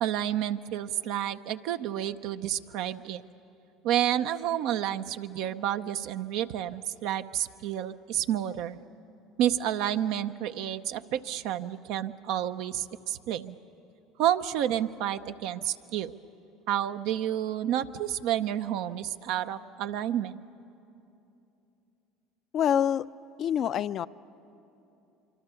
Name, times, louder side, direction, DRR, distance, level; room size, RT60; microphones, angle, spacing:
voice 1, 0.0-3.2 3.8-8.8 9.4-13.6 14.2-16.1 16.7-20.4, right 11 dB, 70° right, 10 dB, 0.7 m, -30 dB
voice 2, 22.5-23.1 23.4-24.1, left 9 dB, 50° left, 16 dB, 0.5 m, -26 dB
25.0 x 24.5 x 6.9 m, 2.8 s
hypercardioid pair, 80°, 0 cm